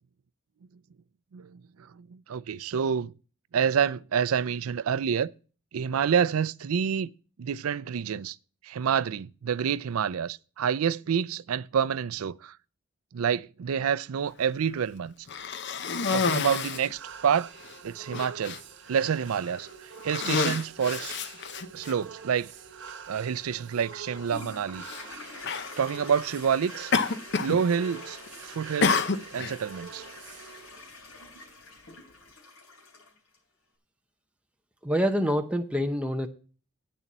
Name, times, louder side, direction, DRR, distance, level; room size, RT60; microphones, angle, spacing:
voice 1, 1.9-3.1 3.5-5.3 5.7-7.1 7.4-8.4 8.6-12.5 13.1-15.1 16.1-17.5 17.8-18.6 18.9-21.2 21.7-22.5 23.1-24.8 25.8-26.9 27.4-29.0 29.3-30.0, right 7 dB, 85° right, 0.4 m, -28 dB
Cough, 15.3-16.9 17.6-17.7 18.1-18.6 19.3-19.6 20.0-21.9 22.9-23.0 24.8-25.0 25.4-25.7 26.9-27.6 27.9-28.3 28.8-29.6, left 4 dB, 55° left, 0.7 m, -28 dB
sound 1, 16.2-30.8, right 6 dB, 60° right, 1.1 m, -46 dB
Toilet flush, 24.1-33.4, left 3 dB, 75° left, 3.2 m, -46 dB
voice 2, 34.8-36.3, equal, 5° right, 0.7 m, -26 dB
9.0 x 6.9 x 7.3 m
head